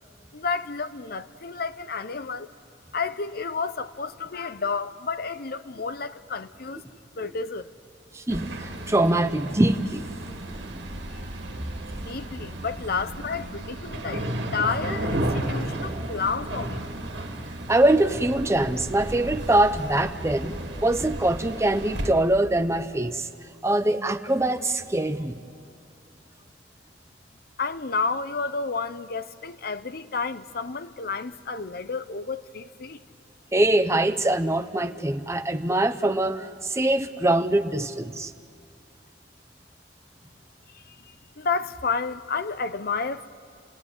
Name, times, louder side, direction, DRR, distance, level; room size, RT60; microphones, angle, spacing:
voice 1, 0.3-2.5 2.9-6.8 7.2-7.7 11.9-16.8 27.6-33.0 40.7-43.3, left 4 dB, 55° left, 0.8 m, -31 dB
voice 2, 8.1-10.1 17.7-23.3 23.6-25.4 33.5-38.3, right 1 dB, 15° right, 0.8 m, -23 dB
sound 1, 8.3-22.1, right 1 dB, 75° right, 2.0 m, -33 dB
29.5 x 16.5 x 9.7 m
head